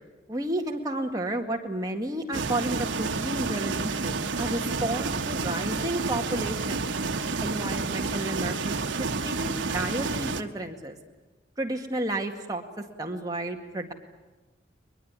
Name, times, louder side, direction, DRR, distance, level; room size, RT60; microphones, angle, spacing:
voice 1, 0.3-6.9 7.4-11.0 11.6-12.6 13.0-13.9, right 1 dB, 20° right, 2 dB, 2.0 m, -32 dB
sound 1, 2.3-10.4, right 4 dB, 85° right, 1.0 m, -30 dB
22.5 x 21.5 x 9.8 m, 1.2 s
head